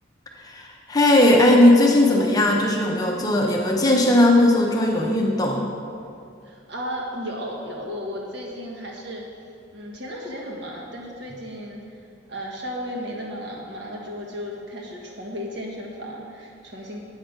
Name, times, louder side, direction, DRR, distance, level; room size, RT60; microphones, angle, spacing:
voice 1, 0.4-5.6, left 1 dB, 20° left, 0 dB, 0.7 m, -18 dB
voice 2, 6.4-9.3 9.7-11.8 12.3-17.0, equal, 60° right, -2 dB, 1.4 m, -34 dB
8.7 x 5.9 x 5.2 m, 2.4 s
head